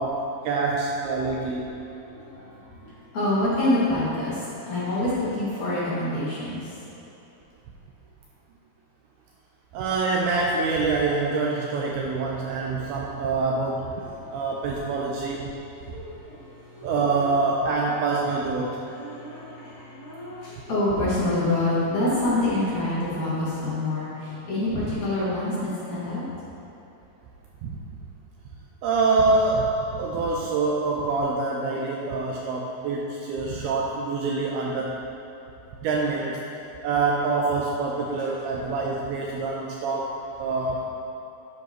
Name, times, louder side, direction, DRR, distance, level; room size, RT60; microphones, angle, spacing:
voice 1, 0.0-1.7 9.7-13.9 14.3-15.5 16.8-18.8 27.6-27.8 28.8-35.0 35.8-36.4 36.8-40.8, right 3 dB, 90° right, -2 dB, 2.3 m, -25 dB
voice 2, 1.8-6.8 14.0-14.3 15.7-17.3 18.9-26.2, left 1 dB, 45° left, -10 dB, 3.1 m, -27 dB
11.0 x 10.0 x 3.1 m, 3.0 s
omnidirectional pair, 5.2 m